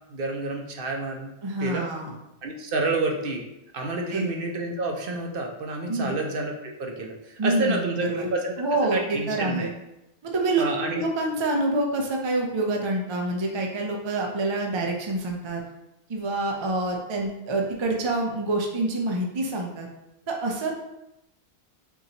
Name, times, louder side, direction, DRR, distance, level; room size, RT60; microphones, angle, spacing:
voice 1, 0.1-1.3 1.6-1.8 2.4-3.4 3.7-8.7 8.9-9.7 10.6-11.0, right 2 dB, 65° right, 1 dB, 0.8 m, -29 dB
voice 2, 1.4-2.2 4.1-4.3 5.9-6.2 7.4-8.3 8.6-9.7 10.2-10.6 10.9-15.6 16.1-19.9 20.3-20.8, right 2 dB, 40° right, 1 dB, 0.4 m, -27 dB
4.5 x 2.6 x 2.8 m, 0.88 s
omnidirectional pair, 1.0 m